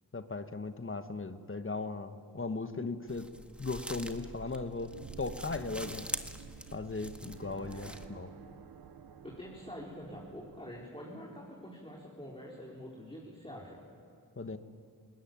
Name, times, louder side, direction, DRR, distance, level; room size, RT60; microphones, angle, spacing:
voice 1, 0.1-3.3 3.6-4.9 5.2-6.1 6.7-8.3 14.4-14.6, left 3 dB, 35° left, 9 dB, 1.3 m, -37 dB
sound 1, 3.1-8.1, equal, 5° right, 1.7 m, -44 dB
sound 2, 4.8-10.9, right 7 dB, 75° right, 1.0 m, -51 dB
voice 2, 7.6-8.2 9.2-13.8, equal, 15° left, -3 dB, 4.1 m, -46 dB
21.0 x 19.0 x 9.5 m, 2.4 s
cardioid pair, 50°, 37 cm